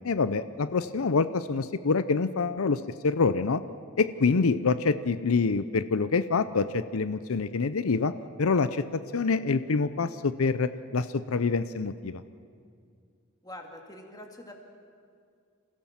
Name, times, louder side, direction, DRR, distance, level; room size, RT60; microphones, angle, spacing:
voice 1, 0.0-3.6 4.0-8.1 8.4-12.2, left 4 dB, 90° left, 13 dB, 0.6 m, -26 dB
voice 2, 13.4-14.5, left 1 dB, 20° left, 3 dB, 2.4 m, -44 dB
27.0 x 16.0 x 7.4 m, 2.2 s
head